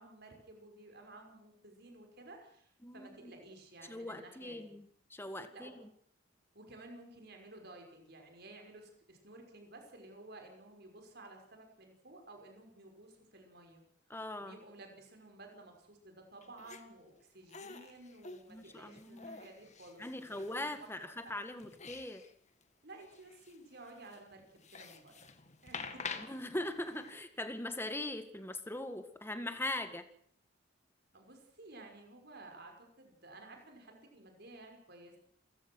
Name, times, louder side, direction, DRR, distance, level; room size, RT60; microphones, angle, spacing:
voice 1, 0.0-4.7 5.5-5.7 6.5-13.8 14.4-21.4 22.8-24.4 24.7-25.3 25.6-26.2 31.1-35.2, right 2 dB, 55° right, 3 dB, 5.9 m, -54 dB
voice 2, 2.8-3.3 3.9-5.9 14.1-14.6 18.5-19.4 20.0-22.2 26.3-30.0, left 1 dB, 10° left, 9 dB, 1.8 m, -41 dB
sound 1, 16.4-16.8 17.5-20.9 21.3-22.3 22.6-22.7 23.0-27.2, left 5 dB, 35° left, 2.0 m, -48 dB
28.0 x 16.0 x 6.4 m, 0.62 s
head